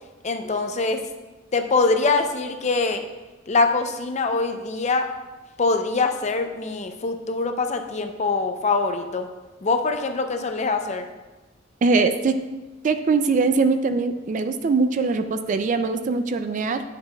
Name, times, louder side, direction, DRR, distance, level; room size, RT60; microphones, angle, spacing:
voice 1, 0.2-1.0 1.5-3.0 3.5-5.1 5.6-9.3 9.6-11.1, left 3 dB, 35° left, 6 dB, 0.5 m, -23 dB
voice 2, 11.8-12.3 12.8-16.8, right 4 dB, 40° right, 9 dB, 0.3 m, -22 dB
9.5 x 6.6 x 2.3 m, 1.2 s
head